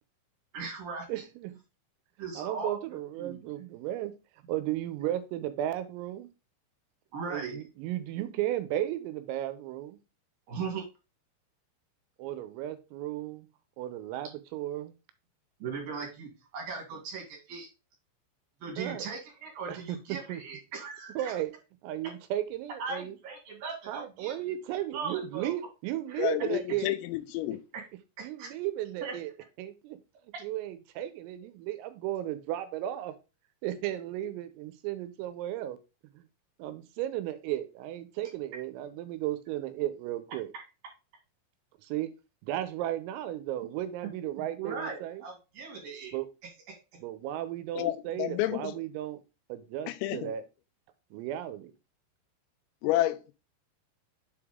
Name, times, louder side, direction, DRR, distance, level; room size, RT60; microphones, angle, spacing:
voice 1, 0.5-1.1 2.2-2.8 3.1-3.4 7.1-7.6 10.5-10.8 15.6-17.7 18.6-21.4 22.8-24.4 24.9-25.6 26.1-26.3 27.7-27.8 28.2-28.5 29.0-29.1 40.5-40.6 44.4-46.2, right 5 dB, 50° right, 3.7 m, -38 dB
voice 2, 1.1-1.6 2.4-4.1 4.5-6.3 7.3-10.0 12.2-13.5 13.8-15.0 18.8-19.1 19.7-19.8 20.3-20.4 21.2-21.5 21.8-23.2 23.9-26.9 28.2-29.3 29.6-30.0 30.4-33.1 33.6-35.8 36.1-36.3 36.6-40.5 41.8-42.1 42.4-45.2 46.1-46.3 47.0-49.2 49.5-50.4 51.1-51.7, right 13 dB, 85° right, 3.6 m, -34 dB
voice 3, 26.2-27.6 47.8-48.8 49.9-50.3 52.8-53.3, left 15 dB, 90° left, 3.4 m, -30 dB
7.8 x 5.0 x 3.6 m
omnidirectional pair, 5.9 m